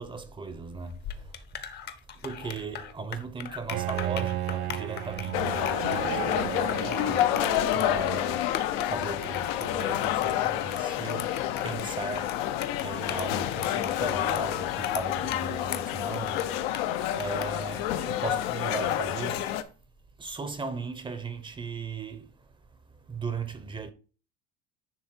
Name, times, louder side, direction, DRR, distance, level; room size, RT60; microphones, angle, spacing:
voice 1, 0.0-1.4 2.1-7.4 7.7-8.5 8.8-12.4 12.8-16.7 17.2-19.5 20.2-22.4 23.1-23.9, right 4 dB, 15° right, 0.7 m, -37 dB
sound 1, 0.8-18.6, left 9 dB, 35° left, 0.8 m, -41 dB
Bowed string instrument, 3.7-8.5, right 15 dB, 75° right, 0.7 m, -34 dB
sound 2, 5.3-19.6, left 12 dB, 75° left, 0.9 m, -29 dB
10.0 x 3.4 x 4.5 m
supercardioid pair, 135°, 30 cm